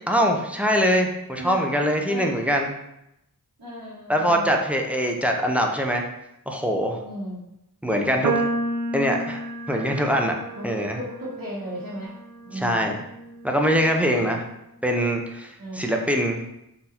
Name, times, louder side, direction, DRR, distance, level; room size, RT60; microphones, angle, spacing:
voice 1, 0.1-2.7 4.1-6.1 6.5-7.0 7.8-8.4 8.9-10.4 10.6-11.0 12.6-13.0 13.4-14.4 14.8-16.4, equal, 5° right, 2 dB, 0.5 m, -23 dB
voice 2, 1.3-1.7 2.1-2.4 3.6-4.6 7.0-7.4 10.5-12.2 12.4-13.0 14.1-14.4 15.6-15.9, equal, 70° right, -10 dB, 1.3 m, -36 dB
sound 1, 8.2-14.6, right 2 dB, 55° right, 0.5 m, -32 dB
3.9 x 2.6 x 4.3 m, 0.85 s
wide cardioid pair, 100°, 36 cm